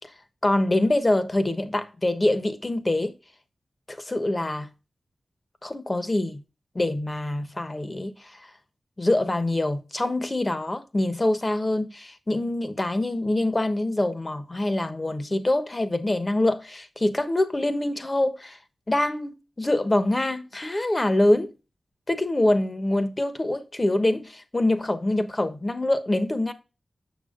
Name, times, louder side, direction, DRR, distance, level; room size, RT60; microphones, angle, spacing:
voice 1, 0.4-3.1 3.9-4.7 5.6-6.4 6.7-8.5 9.0-18.6 18.9-21.5 22.1-26.5, left 1 dB, 35° left, 1.1 m, -25 dB
7.0 x 6.2 x 2.5 m
cardioid pair, 40°, 0 cm